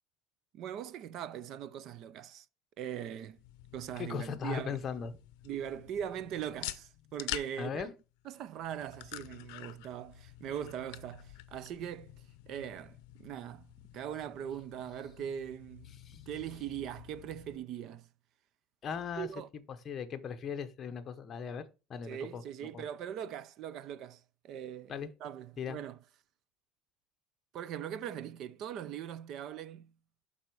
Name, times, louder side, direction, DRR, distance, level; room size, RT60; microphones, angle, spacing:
voice 1, 0.5-2.5 2.8-3.4 3.7-4.8 5.4-7.9 8.3-12.1 12.5-13.7 13.9-18.1 19.2-19.5 22.0-24.9 25.2-26.0 27.5-29.9, right 9 dB, 35° right, 0.5 m, -41 dB
sound 1, 3.3-17.6, left 17 dB, 65° left, 0.6 m, -48 dB
voice 2, 4.0-5.2 7.6-7.9 16.0-16.2 18.8-19.3 19.8-22.8 24.9-25.1 25.6-25.8, left 7 dB, 25° left, 0.8 m, -38 dB
11.5 x 4.2 x 4.6 m
cardioid pair, 180°, 0 cm